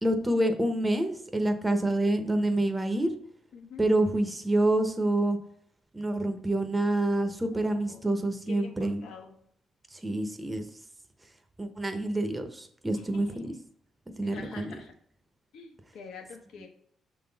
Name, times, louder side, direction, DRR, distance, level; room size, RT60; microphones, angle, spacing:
voice 1, 0.0-3.1 3.8-5.4 5.9-9.0 9.9-10.6 11.6-13.5 14.2-14.7, right 1 dB, 15° right, 7 dB, 0.8 m, -27 dB
voice 2, 3.5-3.8 7.5-9.4 12.9-13.5 14.2-14.9 15.5-16.7, left 5 dB, 80° left, 3 dB, 1.2 m, -47 dB
6.3 x 3.8 x 4.0 m, 0.67 s
cardioid pair, 90°, 0 cm